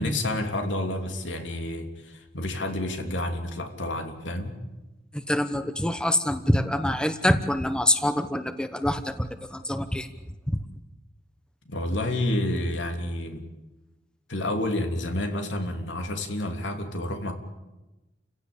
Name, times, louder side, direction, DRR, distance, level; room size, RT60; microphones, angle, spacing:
voice 1, 0.0-4.6 11.7-13.4 14.3-17.3, left 1 dB, 85° left, 5 dB, 3.0 m, -29 dB
voice 2, 5.1-10.1 10.5-10.6, left 1 dB, 5° left, 10 dB, 1.0 m, -25 dB
29.5 x 16.5 x 8.7 m, 1.1 s
head